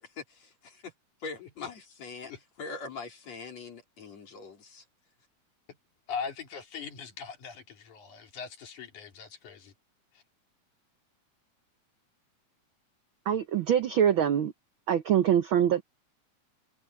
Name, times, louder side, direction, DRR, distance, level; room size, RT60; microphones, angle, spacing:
voice 1, 0.0-0.9 1.2-2.3 2.6-4.9, left 4 dB, 60° left, 5.4 m, -42 dB
voice 2, 6.1-9.7 10.1-10.2, left 6 dB, 80° left, 4.3 m, -40 dB
voice 3, 13.3-14.5 14.9-15.8, right 9 dB, 80° right, 1.1 m, -24 dB
omnidirectional pair, 3.4 m